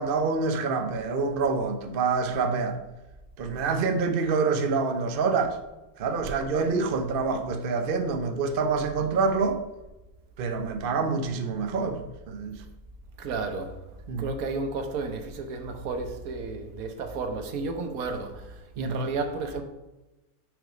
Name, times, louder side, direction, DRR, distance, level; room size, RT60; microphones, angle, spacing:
voice 1, 0.0-2.8 3.4-5.6 6.0-9.6 10.4-12.0 12.3-12.6 14.1-14.3 18.8-19.0, right 4 dB, 50° right, 0.7 m, -26 dB
voice 2, 13.2-13.8 14.2-19.6, right 3 dB, 70° right, 1.3 m, -32 dB
6.2 x 5.3 x 4.9 m
omnidirectional pair, 1.6 m